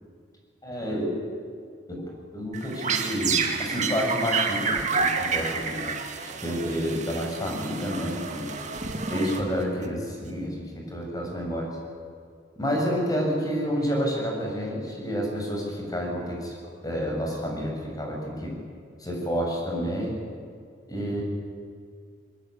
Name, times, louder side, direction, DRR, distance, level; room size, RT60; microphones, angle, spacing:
voice 1, 0.6-1.1 1.9-2.0 2.3-5.9 6.2-8.5 9.0-11.8 12.6-16.5 16.8-18.6 19.0-20.2 20.9-21.2, equal, 20° left, 0 dB, 6.7 m, -29 dB
sound 1, 2.5-9.8, right 5 dB, 40° right, 2.2 m, -29 dB
22.5 x 20.5 x 9.8 m, 2.1 s
head